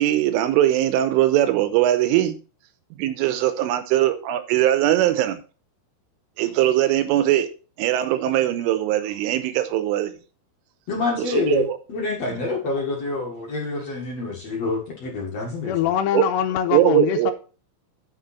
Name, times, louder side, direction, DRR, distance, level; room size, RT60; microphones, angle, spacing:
voice 1, 0.0-2.4 3.0-5.4 6.4-7.5 7.8-10.1 11.2-11.8 16.1-16.2 16.7-17.3, right 13 dB, 85° right, 3.3 m, -20 dB
voice 2, 10.9-15.9, left 3 dB, 60° left, 1.7 m, -27 dB
voice 3, 15.7-17.3, left 10 dB, 85° left, 2.5 m, -23 dB
9.2 x 6.9 x 4.1 m
omnidirectional pair, 5.9 m